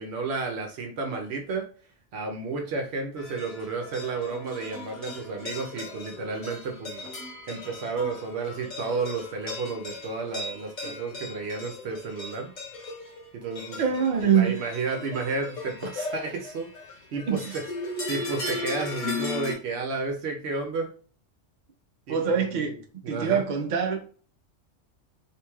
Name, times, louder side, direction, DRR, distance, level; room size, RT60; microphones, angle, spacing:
voice 1, 0.0-1.7 2.1-7.0 7.5-12.5 13.3-13.8 14.2-16.7 17.1-17.6 18.1-20.9 22.1-22.8 23.0-23.4, right 4 dB, 65° right, 0.8 m, -32 dB
sound 1, 3.2-19.5, left 3 dB, 75° left, 1.4 m, -37 dB
voice 2, 13.8-14.7 17.3-17.6 22.1-22.8 23.1-24.0, right 7 dB, 85° right, 0.4 m, -24 dB
3.0 x 2.7 x 2.2 m
omnidirectional pair, 1.3 m